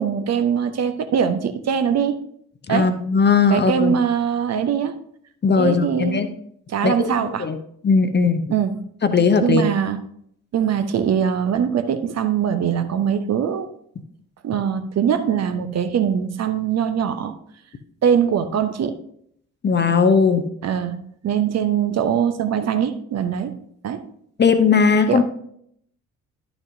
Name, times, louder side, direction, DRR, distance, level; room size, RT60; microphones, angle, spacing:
voice 1, 0.0-2.1 2.7-2.9 3.5-5.0 5.6-6.3 6.7-7.4 8.5-8.7 9.4-10.0 10.5-13.7 14.4-17.4 18.0-19.0 20.6-21.0 21.2-23.6 23.8-24.0 25.1-25.2, right 8 dB, 40° right, 9 dB, 0.8 m, -22 dB
voice 2, 2.7-3.9 5.4-6.3 6.8-7.1 7.4-7.6 7.8-8.5 9.0-9.7 19.6-20.5 24.4-25.2, left 5 dB, 25° left, 9 dB, 0.8 m, -18 dB
11.5 x 6.0 x 2.7 m, 0.68 s
figure-of-eight pair, 45°, 41 cm